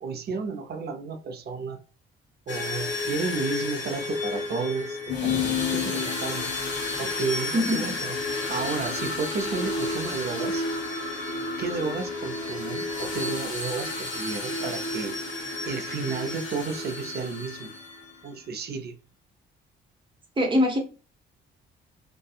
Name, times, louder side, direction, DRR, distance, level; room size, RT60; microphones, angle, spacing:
voice 1, 0.0-1.8 2.5-6.5 7.0-8.2 8.5-10.6 11.6-15.2 15.6-17.7 18.2-19.0, right 4 dB, 55° right, 0.6 m, -32 dB
sound 1, 2.5-18.1, left 3 dB, 60° left, 1.2 m, -31 dB
voice 2, 7.5-7.9 20.4-20.8, left 1 dB, 25° right, 0.9 m, -23 dB
2.7 x 2.2 x 2.3 m
cardioid pair, 90°, 20 cm